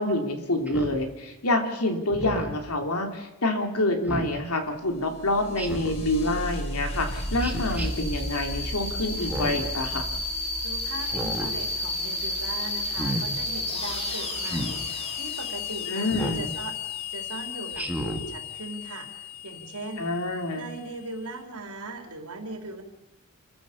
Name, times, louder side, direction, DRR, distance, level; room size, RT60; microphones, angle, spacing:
voice 1, 0.0-10.0 15.9-16.5 20.0-20.7, left 1 dB, 75° left, 4 dB, 3.2 m, -27 dB
Speech synthesizer, 0.7-1.0 2.1-2.6 4.0-4.4 5.6-6.1 7.4-7.9 9.2-9.7 11.0-11.5 12.8-13.2 14.4-14.8 16.1-16.4 17.7-18.2, right 1 dB, 5° right, 2.1 m, -32 dB
sound 1, 4.9-21.2, left 2 dB, 30° left, 3.4 m, -33 dB
voice 2, 10.6-16.7 17.1-19.1 19.4-20.1 20.5-22.8, right 2 dB, 80° right, 3 dB, 4.2 m, -39 dB
28.0 x 15.0 x 7.1 m, 0.94 s
head